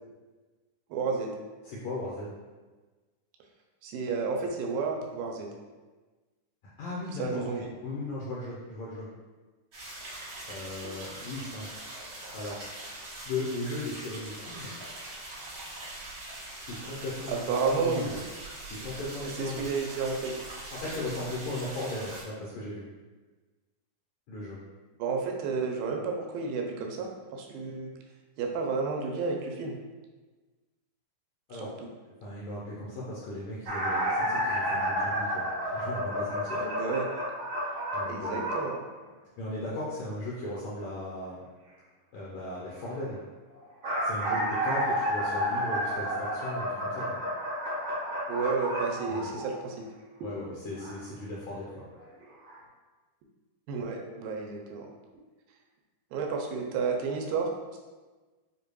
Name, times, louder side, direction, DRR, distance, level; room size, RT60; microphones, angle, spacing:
voice 1, 0.9-1.4 3.8-5.5 7.2-7.7 17.3-18.1 19.4-20.3 25.0-27.9 28.4-29.8 31.5-31.9 36.6-37.1 38.1-38.8 48.3-49.9 53.7-54.9 56.1-57.8, right 4 dB, 90° right, 1 dB, 2.4 m, -31 dB
voice 2, 1.6-2.3 6.8-9.1 10.5-11.7 12.1-12.6 13.2-14.7 16.6-18.2 18.6-19.7 20.7-22.8 24.3-24.6 31.5-31.9 32.2-36.6 37.6-38.5 39.4-41.4 42.1-43.2 44.0-47.2 49.1-49.3 50.2-51.8, left 1 dB, 85° left, -6 dB, 1.6 m, -37 dB
sound 1, 9.7-22.2, right 2 dB, 50° right, 2.2 m, -42 dB
sound 2, 33.7-38.7 43.5-49.7 50.8-50.9 52.0-52.1 52.4-52.5, equal, 65° right, 1.1 m, -30 dB
6.6 x 2.6 x 2.3 m, 1.3 s
omnidirectional pair, 4.0 m